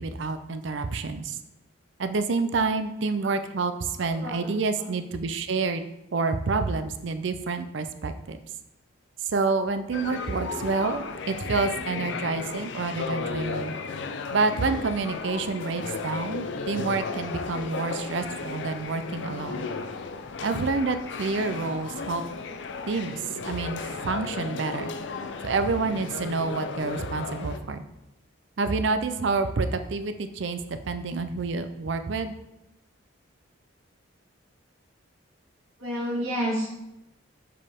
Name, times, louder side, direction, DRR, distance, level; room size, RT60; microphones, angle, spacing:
voice 1, 0.0-1.4 2.0-5.8 6.1-8.4 9.2-13.7 14.3-19.7 20.4-22.2 22.9-24.9 25.4-27.8 28.6-32.3, right 4 dB, 60° right, 9 dB, 0.5 m, -28 dB
voice 2, 4.0-4.6 35.8-36.8, equal, 80° right, -4 dB, 2.1 m, -30 dB
sound 1, 9.9-27.6, left 4 dB, 60° left, 0.5 m, -34 dB
6.8 x 5.2 x 3.5 m, 0.90 s
head